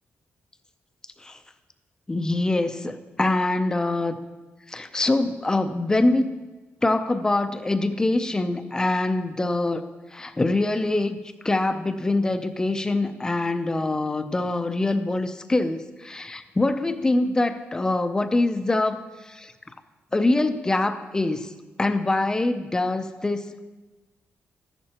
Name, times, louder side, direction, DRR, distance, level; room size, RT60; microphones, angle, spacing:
voice 1, 2.1-4.2 4.7-6.3 6.8-11.2 11.4-19.5 20.1-21.5 21.8-23.7, left 2 dB, 15° left, 9 dB, 0.5 m, -24 dB
14.0 x 11.0 x 2.9 m, 1.2 s
wide cardioid pair, 140°, 4 cm